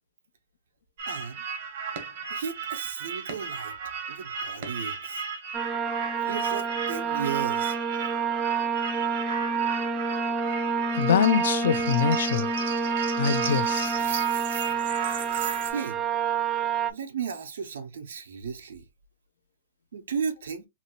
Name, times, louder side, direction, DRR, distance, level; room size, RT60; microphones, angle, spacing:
sound 1, 1.0-15.7, right 6 dB, 55° right, 0.9 m, -35 dB
voice 1, 1.1-1.4 2.3-3.7 4.1-5.2 6.2-7.8 15.7-16.0 16.9-18.8 19.9-20.7, right 6 dB, 90° right, 0.8 m, -34 dB
sound 2, 5.5-16.9, right 5 dB, 15° right, 0.3 m, -28 dB
voice 2, 10.9-12.5 13.2-14.1, left 8 dB, 75° left, 0.3 m, -24 dB
2.8 x 2.8 x 2.8 m
hypercardioid pair, 155°, 0 cm